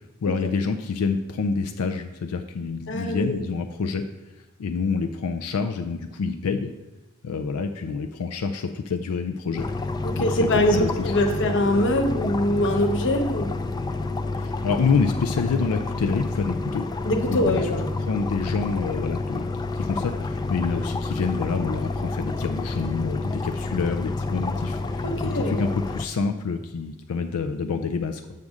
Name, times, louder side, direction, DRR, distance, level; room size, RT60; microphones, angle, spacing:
voice 1, 0.2-4.0 4.6-6.7 7.2-9.7 10.2-11.1 14.4-17.7 18.1-19.5 19.7-25.1 25.3-28.2, left 5 dB, 90° left, 6 dB, 0.4 m, -27 dB
voice 2, 2.9-3.4 10.0-13.5 17.0-17.9 25.0-25.6, left 1 dB, 60° left, 5 dB, 0.8 m, -23 dB
sound 1, 9.6-26.0, left 3 dB, 20° left, 0.3 m, -29 dB
7.6 x 3.6 x 6.3 m, 1.1 s
head